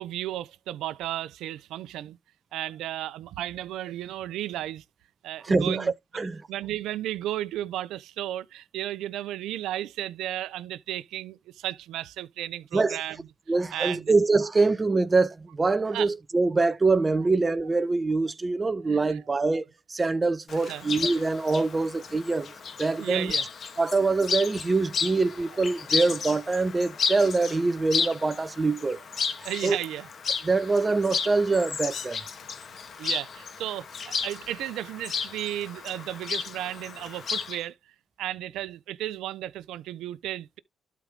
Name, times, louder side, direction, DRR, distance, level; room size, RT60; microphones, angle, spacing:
voice 1, 0.0-2.2 2.5-4.8 5.2-5.9 6.5-13.3 13.7-14.1 15.9-16.1 18.9-19.2 20.7-20.9 23.0-23.5 29.4-30.1 33.0-37.7 38.2-40.6, right 13 dB, 85° right, 0.8 m, -34 dB
voice 2, 5.5-6.4 12.7-13.0 13.5-22.5 22.8-23.3 23.8-29.0 29.4-29.8 30.4-32.2, right 3 dB, 25° right, 1.1 m, -24 dB
Chirp tweet, 20.5-37.6, left 6 dB, 50° left, 2.0 m, -33 dB
12.0 x 4.7 x 3.7 m
cardioid pair, 90°, 0 cm